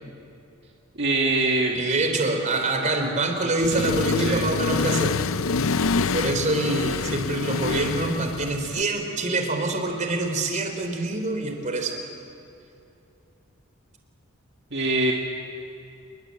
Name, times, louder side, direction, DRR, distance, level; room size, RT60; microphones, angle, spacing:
voice 1, 1.0-1.8 4.2-4.5 14.7-15.1, right 2 dB, 55° right, -1 dB, 2.0 m, -23 dB
voice 2, 1.7-5.2 6.1-12.0, right 2 dB, 35° right, 4 dB, 3.6 m, -25 dB
Accelerating revving vroom, 3.6-8.8, left 4 dB, 70° left, 0.7 m, -26 dB
28.0 x 21.5 x 8.5 m, 2.7 s
head